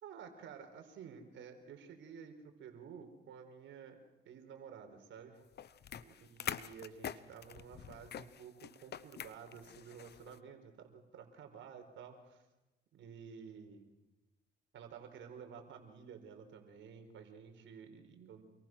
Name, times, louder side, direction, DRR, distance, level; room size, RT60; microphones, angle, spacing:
voice 1, 0.0-4.0 4.2-5.4 6.0-12.4 12.9-13.9 14.7-18.4, right 7 dB, 75° right, 6 dB, 4.5 m, -52 dB
sound 1, 5.5-10.4, left 9 dB, 55° left, 1.0 m, -45 dB
28.0 x 22.5 x 6.3 m, 1.0 s
cardioid pair, 90°, 20 cm